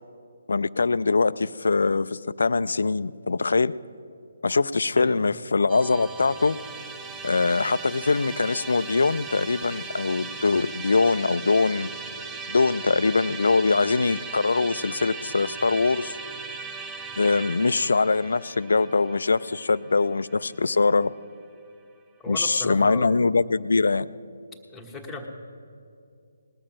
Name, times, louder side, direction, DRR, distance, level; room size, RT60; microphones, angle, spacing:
voice 1, 0.5-3.7 4.4-6.6 7.2-11.9 12.5-16.1 17.2-21.1 22.3-24.1, left 4 dB, 75° left, 17 dB, 0.3 m, -23 dB
voice 2, 4.9-5.3 22.2-23.1 24.7-25.3, left 2 dB, 5° left, -1 dB, 1.3 m, -36 dB
Musical instrument, 5.7-20.9, right 4 dB, 20° right, 0.8 m, -38 dB
19.0 x 6.7 x 7.4 m, 2.4 s
figure-of-eight pair, 150°, 0 cm